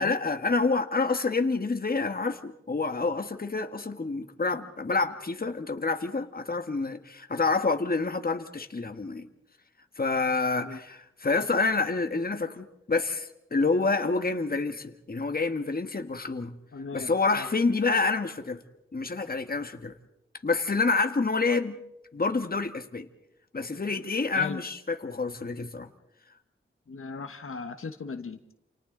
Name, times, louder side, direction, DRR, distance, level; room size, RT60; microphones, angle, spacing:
voice 1, 0.0-9.3 10.0-16.6 16.9-18.6 18.9-19.9 20.4-21.8 22.1-23.1 23.5-25.9, left 3 dB, 45° left, 7 dB, 1.6 m, -28 dB
voice 2, 16.7-17.5 24.3-24.6 26.9-28.4, left 4 dB, 80° left, 7 dB, 1.3 m, -38 dB
29.0 x 29.0 x 3.9 m, 0.80 s
wide cardioid pair, 95°, 21 cm